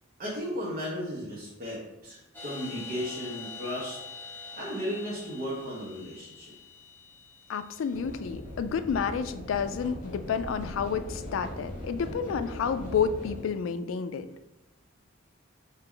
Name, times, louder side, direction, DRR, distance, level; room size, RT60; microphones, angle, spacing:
voice 1, 0.2-4.0 4.6-6.5, equal, 45° right, -6 dB, 1.0 m, -35 dB
sound 1, 2.3-7.9, left 5 dB, 10° left, 1.2 m, -44 dB
voice 2, 7.5-14.3, left 6 dB, 70° left, 11 dB, 0.3 m, -30 dB
sound 2, 7.9-13.4, left 1 dB, 45° left, 1.2 m, -40 dB
4.5 x 2.9 x 3.7 m, 0.93 s
head